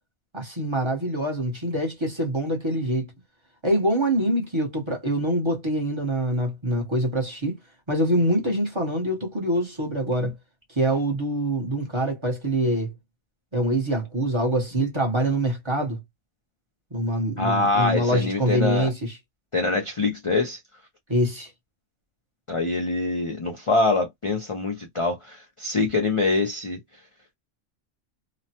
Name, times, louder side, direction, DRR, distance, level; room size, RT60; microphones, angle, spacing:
voice 1, 0.3-3.1 3.6-7.6 7.9-10.3 10.7-12.9 13.5-16.0 16.9-19.2 21.1-21.5, right 1 dB, 25° right, 0.8 m, -25 dB
voice 2, 17.4-18.9 19.5-20.6 22.5-26.8, left 3 dB, 50° left, 0.3 m, -24 dB
2.9 x 2.1 x 2.8 m
omnidirectional pair, 1.4 m